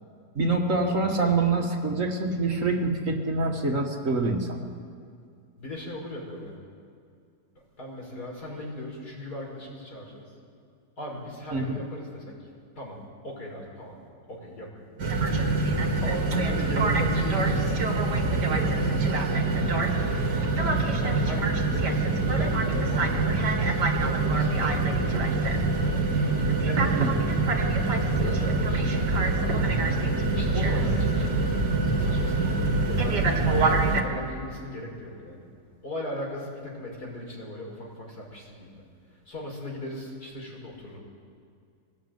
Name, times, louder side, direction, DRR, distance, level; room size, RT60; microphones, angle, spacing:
voice 1, 0.4-4.6 11.5-11.7 26.9-27.3 30.8-31.0, right 3 dB, 50° right, 2 dB, 2.3 m, -26 dB
voice 2, 5.6-6.5 7.5-10.2 11.0-12.2 12.8-14.0 14.3-14.9 16.0-19.4 19.9-26.1 26.6-27.0 27.8-29.8 30.3-32.6 32.9-33.2 33.5-35.5 35.8-38.8 39.3-41.0, left 1 dB, 65° left, -2 dB, 6.3 m, -38 dB
sound 1, 15.0-34.0, right 3 dB, 90° right, 2.6 m, -24 dB
24.0 x 18.5 x 9.5 m, 2.3 s
omnidirectional pair, 1.8 m